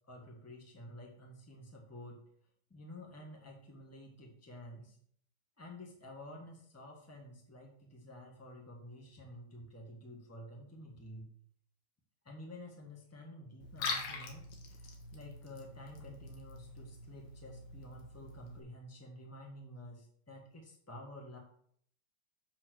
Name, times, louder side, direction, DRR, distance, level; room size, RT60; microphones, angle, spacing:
voice 1, 0.0-2.2 2.7-5.0 5.6-11.3 12.2-21.4, left 1 dB, 10° left, 0 dB, 0.7 m, -51 dB
Liquid, 13.6-18.6, left 4 dB, 70° left, 2.6 m, -44 dB
7.5 x 4.5 x 6.3 m, 0.63 s
omnidirectional pair, 3.6 m